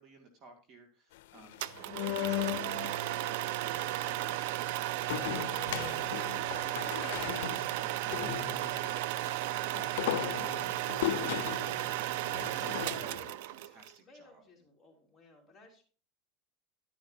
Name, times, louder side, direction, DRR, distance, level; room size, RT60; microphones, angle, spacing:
voice 1, 0.0-12.0 12.5-14.4, right 3 dB, 40° right, 4 dB, 2.2 m, -56 dB
sound 1, 1.2-3.1 5.1-8.9 9.7-13.3, left 15 dB, 80° left, 0.5 m, -37 dB
sound 2, 1.6-13.9, right 14 dB, 70° right, 0.5 m, -34 dB
voice 2, 5.1-5.9 11.7-12.3 13.6-15.8, left 4 dB, 15° left, -2 dB, 3.7 m, -55 dB
11.5 x 10.5 x 2.8 m, 0.37 s
supercardioid pair, 145°, 0 cm